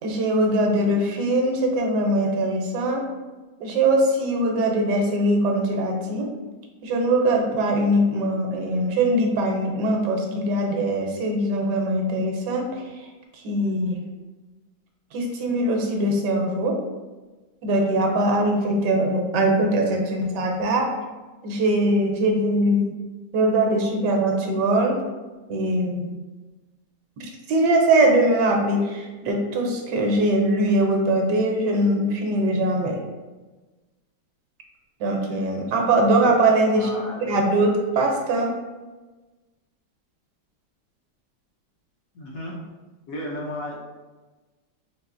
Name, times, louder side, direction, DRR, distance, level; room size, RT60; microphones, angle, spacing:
voice 1, 0.0-3.0 3.6-6.3 6.8-12.8 13.4-14.0 15.1-16.7 17.6-20.9 21.4-22.9 23.3-25.0 25.5-26.1 27.2-33.0 35.0-36.9 37.3-38.5, right 1 dB, 75° right, 2 dB, 1.2 m, -22 dB
voice 2, 36.7-37.6 42.1-42.6 43.1-43.8, left 1 dB, 70° left, -3 dB, 0.9 m, -34 dB
4.0 x 2.7 x 2.5 m, 1.2 s
omnidirectional pair, 1.9 m